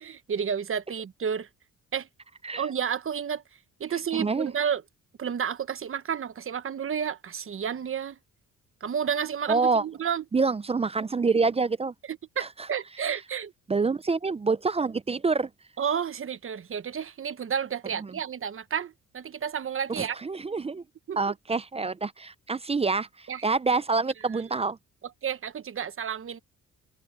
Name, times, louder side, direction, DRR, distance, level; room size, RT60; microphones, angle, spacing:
voice 1, 0.0-1.5 1.9-2.1 2.6-3.4 3.8-4.8 5.2-8.2 8.8-10.2 12.4-13.5 15.8-20.2 21.1-21.2 23.3-23.4 23.7-23.8 25.2-26.4, right 7 dB, 45° right, 1.2 m, -31 dB
voice 2, 4.1-4.5 9.5-9.8 10.3-11.9 12.4-12.5 13.7-15.5 18.0-18.1 19.9-20.8 21.2-24.8, right 4 dB, 20° right, 0.5 m, -26 dB
open air
cardioid pair, 90°, 30 cm